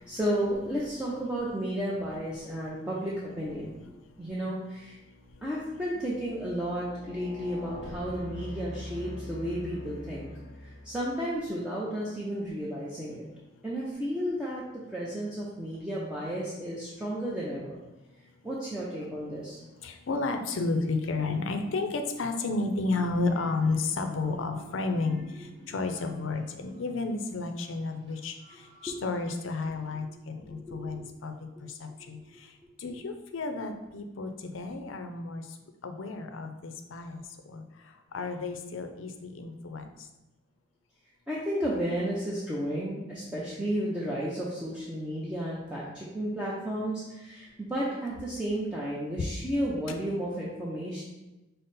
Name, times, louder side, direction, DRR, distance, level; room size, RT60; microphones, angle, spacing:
voice 1, 0.0-3.7 4.2-5.0 5.4-10.3 10.6-13.3 13.6-17.8 18.4-19.6 28.9-29.0 30.7-31.0 31.6-31.7 32.0-32.1 32.9-33.0 41.3-51.0, equal, 5° right, -7 dB, 0.5 m, -33 dB
sound 1, 3.6-3.7 4.3-11.2, equal, 25° left, 0.7 m, -44 dB
voice 2, 19.8-28.3 28.8-31.4 31.8-32.2 32.8-35.4 35.8-37.2 37.5-37.6 38.1-39.8, left 3 dB, 85° left, 6 dB, 0.5 m, -32 dB
sound 2, 22.9-29.9, equal, 25° right, 1.0 m, -52 dB
5.2 x 2.0 x 4.0 m, 1.0 s
head